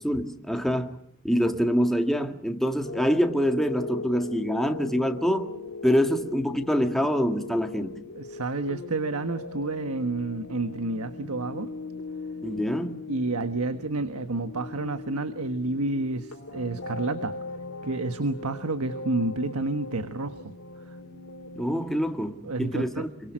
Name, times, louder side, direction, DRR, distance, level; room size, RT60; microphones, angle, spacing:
voice 1, 0.0-0.9 1.2-5.5 5.8-8.0 12.4-13.0 21.6-23.3, equal, ahead, 1.8 m, -25 dB
sound 1, 2.8-21.6, left 3 dB, 75° left, 3.4 m, -39 dB
voice 2, 8.1-11.7 13.1-17.4 17.8-20.5 20.9-21.0 22.4-23.1, right 2 dB, 85° right, 1.4 m, -30 dB
27.5 x 24.0 x 6.4 m
head